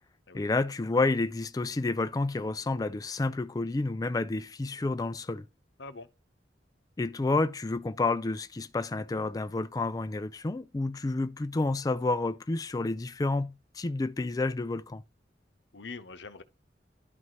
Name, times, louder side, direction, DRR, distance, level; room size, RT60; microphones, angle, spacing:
voice 1, 0.3-5.4 7.0-15.0, left 3 dB, 20° left, 0.4 m, -30 dB
voice 2, 15.7-16.4, left 4 dB, 85° left, 0.9 m, -43 dB
12.0 x 4.1 x 3.1 m
head